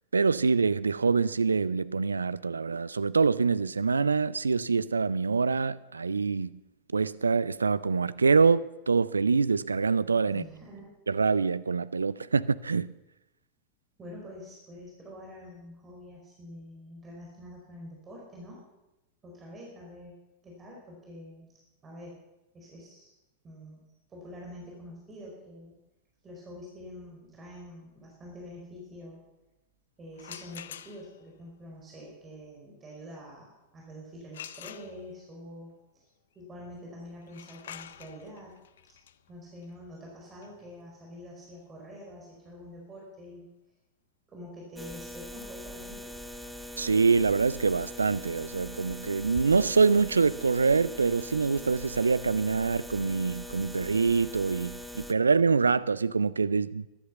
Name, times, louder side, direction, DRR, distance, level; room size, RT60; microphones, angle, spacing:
voice 1, 0.1-6.6 6.9-10.4 11.1-12.9 46.8-56.9, right 4 dB, 75° right, 0.4 m, -25 dB
voice 2, 10.3-10.9 14.0-18.6 19.2-20.1 20.4-21.5 21.8-22.2 22.5-23.1 23.4-23.8 24.1-25.8 26.2-29.2 30.0-33.5 33.7-36.1 36.3-38.6 39.3-43.5 44.3-46.1, left 1 dB, 20° right, 4.6 m, -46 dB
sound 1, 30.1-31.3 34.3-35.4 37.2-42.9, left 10 dB, 60° left, 0.6 m, -48 dB
sound 2, 44.8-55.1, left 1 dB, ahead, 0.8 m, -42 dB
13.5 x 11.5 x 7.1 m
figure-of-eight pair, 90°, 0 cm